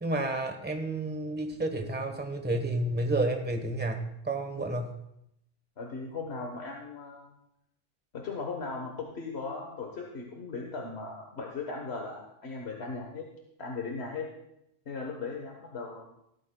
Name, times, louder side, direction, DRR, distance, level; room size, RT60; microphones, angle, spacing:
voice 1, 0.0-5.0, right 2 dB, 10° right, 5 dB, 1.1 m, -31 dB
voice 2, 5.8-7.3 8.1-13.2 13.6-14.3 14.9-16.1, left 4 dB, 80° left, 1 dB, 1.5 m, -38 dB
16.5 x 13.0 x 2.3 m, 0.81 s
omnidirectional pair, 1.1 m